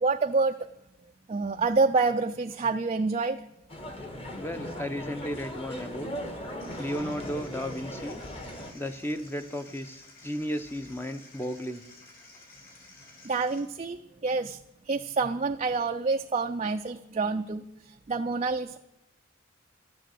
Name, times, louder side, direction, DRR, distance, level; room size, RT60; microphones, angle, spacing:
voice 1, 0.0-0.7 1.3-3.4 13.2-14.6 14.9-17.6 18.1-18.8, right 4 dB, 30° right, 6 dB, 0.4 m, -27 dB
sound 1, 3.7-8.7, equal, 30° left, 1.5 m, -38 dB
voice 2, 4.4-6.1 6.8-8.2 8.7-11.8, equal, 10° left, 9 dB, 0.6 m, -34 dB
sound 2, 6.6-13.6, left 3 dB, 45° left, 4.1 m, -53 dB
12.0 x 9.1 x 7.7 m, 0.89 s
head